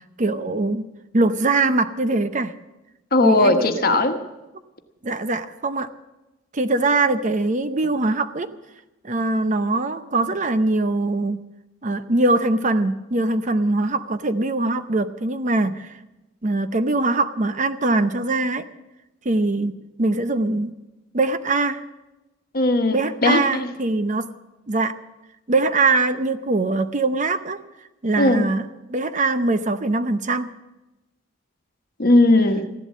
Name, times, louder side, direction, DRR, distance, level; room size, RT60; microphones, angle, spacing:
voice 1, 0.2-0.8 1.1-2.5 3.2-4.0 5.0-5.9 6.5-8.5 9.0-11.4 11.8-16.0 16.4-18.6 19.2-20.7 21.1-21.8 22.9-24.3 24.7-25.0 25.5-27.6 28.0-30.5, right 2 dB, 40° right, 11 dB, 0.7 m, -22 dB
voice 2, 3.1-4.2 22.5-23.7 28.2-28.4 32.0-32.6, left 2 dB, 45° left, 6 dB, 1.3 m, -18 dB
15.5 x 11.5 x 7.5 m, 1.0 s
head